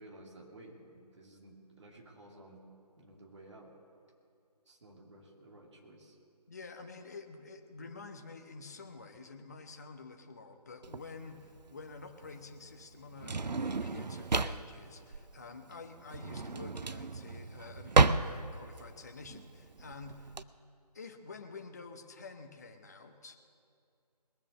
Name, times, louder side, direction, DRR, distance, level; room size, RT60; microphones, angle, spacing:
voice 1, 0.0-2.6 3.0-3.7 4.7-6.2, right 1 dB, 45° right, -1 dB, 2.5 m, -54 dB
voice 2, 6.5-20.3 20.9-23.4, left 4 dB, 25° left, 6 dB, 0.7 m, -49 dB
Drawer open or close, 10.8-20.4, right 3 dB, 85° right, 0.6 m, -32 dB
21.0 x 7.3 x 6.7 m, 2.4 s
figure-of-eight pair, 155°, 21 cm